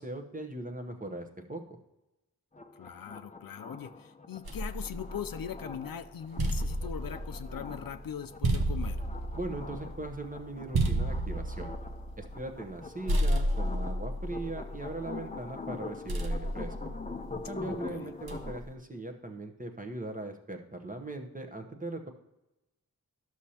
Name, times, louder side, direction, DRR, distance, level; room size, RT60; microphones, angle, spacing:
voice 1, 0.0-1.6 9.3-11.7 12.2-16.9 17.5-22.1, right 2 dB, 20° right, 4 dB, 0.9 m, -39 dB
sound 1, 2.5-18.6, left 3 dB, 20° left, 0.5 m, -44 dB
voice 2, 2.8-9.0 17.6-18.1, left 8 dB, 65° left, 11 dB, 0.5 m, -41 dB
sound 2, 4.4-5.7 6.1-12.8 13.1-15.3 16.1-17.6 18.3-18.7, right 1 dB, 75° right, 0.9 m, -32 dB
12.0 x 6.3 x 2.8 m, 0.94 s
wide cardioid pair, 80°, 37 cm